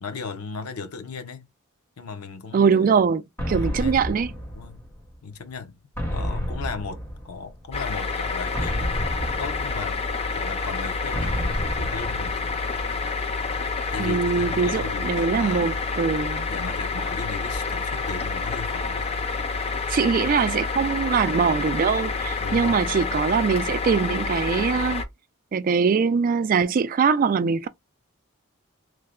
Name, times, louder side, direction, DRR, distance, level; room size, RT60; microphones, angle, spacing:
voice 1, 0.0-1.5 2.0-3.1 3.6-4.2 4.5-4.8 5.2-5.8 6.1-9.0 9.4-10.0 10.3-12.6 13.9-15.8 16.5-19.1 22.4-22.9, left 4 dB, 90° left, 0.7 m, -36 dB
voice 2, 2.5-4.3 14.0-16.5 19.9-25.0 25.5-27.7, right 5 dB, 40° right, 0.3 m, -22 dB
sound 1, 3.4-5.2 6.0-7.7 8.5-10.3 11.1-12.9, equal, 10° left, 1.0 m, -31 dB
sound 2, 7.7-25.0, left 4 dB, 30° left, 0.5 m, -28 dB
3.2 x 2.0 x 3.6 m
head